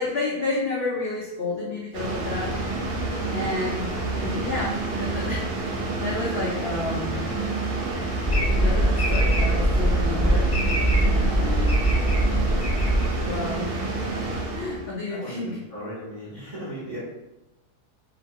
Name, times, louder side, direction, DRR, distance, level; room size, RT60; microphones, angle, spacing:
voice 1, 0.0-2.6 3.3-7.3 8.6-10.5 11.0-11.8 13.2-13.8 14.5-15.6, left 3 dB, 85° left, -5 dB, 0.5 m, -31 dB
sound 1, 1.9-14.9, right 3 dB, 75° right, 1.1 m, -29 dB
sound 2, 8.2-13.6, right 1 dB, 25° left, 0.5 m, -22 dB
voice 2, 15.1-15.4 15.7-17.0, equal, 40° right, -10 dB, 0.5 m, -36 dB
2.8 x 2.2 x 2.7 m, 0.98 s
omnidirectional pair, 1.7 m